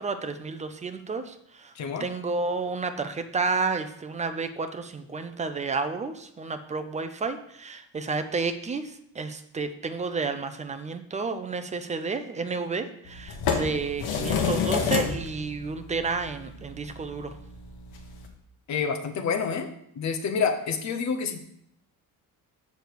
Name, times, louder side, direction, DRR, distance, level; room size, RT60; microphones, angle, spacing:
voice 1, 0.0-1.7 2.0-17.4, right 4 dB, 20° right, 9 dB, 0.5 m, -31 dB
voice 2, 1.7-2.1 18.7-19.7 19.9-21.4, left 6 dB, 50° left, 6 dB, 1.0 m, -28 dB
sound 1, 13.1-18.3, left 6 dB, 80° left, 1.3 m, -30 dB
6.9 x 6.7 x 4.6 m, 0.73 s
cardioid pair, 165°, 37 cm